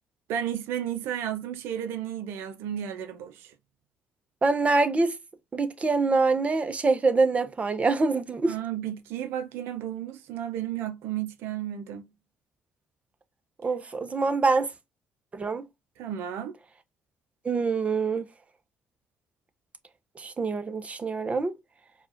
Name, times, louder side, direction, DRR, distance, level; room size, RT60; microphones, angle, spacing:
voice 1, 0.3-3.5 8.4-12.1 16.0-16.5, right 10 dB, 75° right, 0.6 m, -33 dB
voice 2, 4.4-5.1 5.5-8.5 13.6-14.7 15.3-15.6 17.4-18.3 20.2-21.5, right 3 dB, 35° right, 0.9 m, -25 dB
4.6 x 2.4 x 2.6 m
hypercardioid pair, 60°, 4 cm